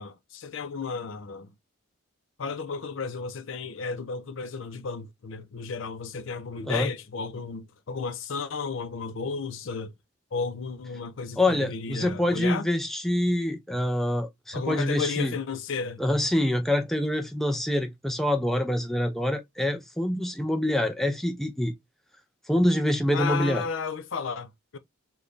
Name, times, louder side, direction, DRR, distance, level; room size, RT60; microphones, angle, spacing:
voice 1, 0.0-1.5 2.4-9.9 10.3-12.7 14.5-16.0 23.1-24.8, left 5 dB, 65° left, 0.5 m, -33 dB
voice 2, 11.4-15.3 16.0-21.7 22.5-23.6, left 1 dB, ahead, 0.4 m, -26 dB
3.3 x 2.2 x 3.8 m
head